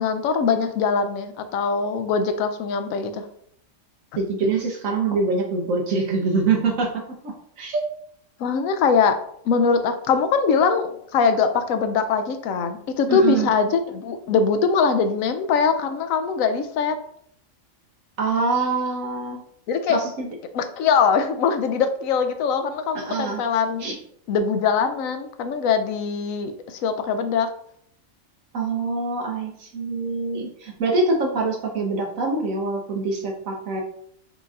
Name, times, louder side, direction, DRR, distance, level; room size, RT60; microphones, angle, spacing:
voice 1, 0.0-3.2 8.4-9.2 9.5-17.0 19.7-20.0 20.5-23.9 24.3-27.5, left 5 dB, 80° left, 9 dB, 1.0 m, -22 dB
voice 2, 4.2-7.8 13.1-13.5 18.2-19.4 19.9-20.3 22.9-23.4 23.8-24.0 28.5-33.8, right 3 dB, 75° right, 1 dB, 1.3 m, -24 dB
4.5 x 4.0 x 2.4 m, 0.66 s
omnidirectional pair, 1.4 m